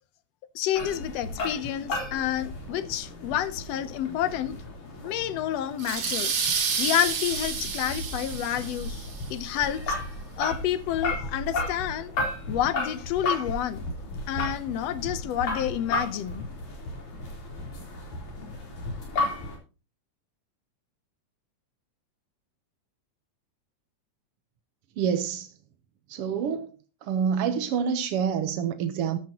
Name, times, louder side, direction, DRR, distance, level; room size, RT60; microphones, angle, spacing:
voice 1, 0.6-4.6 5.0-6.3 6.8-10.0 10.4-12.1 12.5-13.9 14.3-16.4, left 11 dB, 70° left, 1.8 m, -29 dB
sound 1, 0.8-19.6, left 2 dB, 85° left, 5.2 m, -34 dB
sound 2, 5.8-9.2, right 5 dB, 50° right, 2.6 m, -30 dB
voice 2, 25.0-25.5 26.1-26.7 27.1-29.2, right 7 dB, 65° right, 1.6 m, -27 dB
14.0 x 12.0 x 2.9 m
omnidirectional pair, 3.3 m